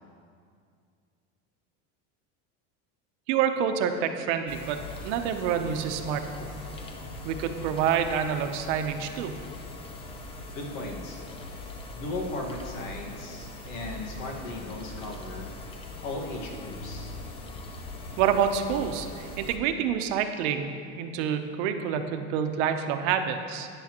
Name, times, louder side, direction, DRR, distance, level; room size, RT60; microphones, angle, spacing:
voice 1, 3.3-6.6 7.2-9.3 18.2-23.7, right 8 dB, 75° right, 6 dB, 0.8 m, -28 dB
sound 1, 4.5-19.6, left 2 dB, 15° left, 0.4 m, -41 dB
voice 2, 10.5-11.2 11.9-15.5 16.0-17.2, left 2 dB, 75° left, 0 dB, 1.7 m, -37 dB
12.5 x 9.8 x 3.0 m, 2.3 s
cardioid pair, 170°, 37 cm